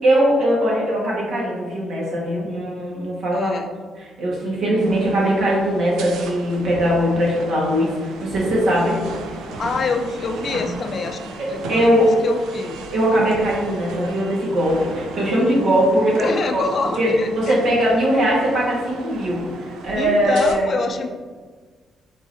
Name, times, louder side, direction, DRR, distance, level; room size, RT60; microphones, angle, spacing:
voice 1, 0.0-3.5 4.2-9.0 11.4-12.1 12.9-16.6 17.0-17.1 17.3-20.8, equal, 70° right, -4 dB, 1.5 m, -20 dB
voice 2, 3.3-3.7 9.6-12.8 15.9-17.6 20.0-21.1, left 4 dB, 50° left, 6 dB, 0.4 m, -26 dB
sound 1, 4.8-20.5, right 2 dB, 85° right, 0.4 m, -35 dB
4.8 x 3.9 x 2.7 m, 1.5 s
cardioid pair, 90°, 0 cm